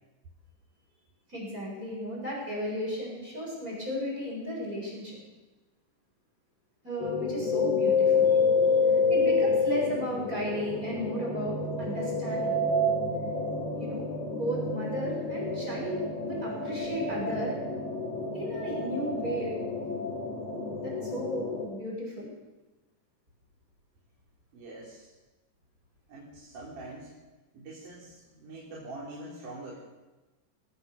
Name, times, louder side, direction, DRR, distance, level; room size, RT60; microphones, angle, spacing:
voice 1, 1.3-5.2 6.8-8.4 8.9-12.6 13.7-17.6 18.3-19.6 20.8-22.3, equal, 25° right, -3 dB, 7.7 m, -35 dB
sound 1, 7.0-21.6, left 3 dB, 50° left, 3.9 m, -28 dB
voice 2, 24.5-25.1 26.1-27.1 27.5-29.9, right 2 dB, 70° right, -4 dB, 5.2 m, -44 dB
23.5 x 18.0 x 6.9 m, 1.1 s
omnidirectional pair, 3.7 m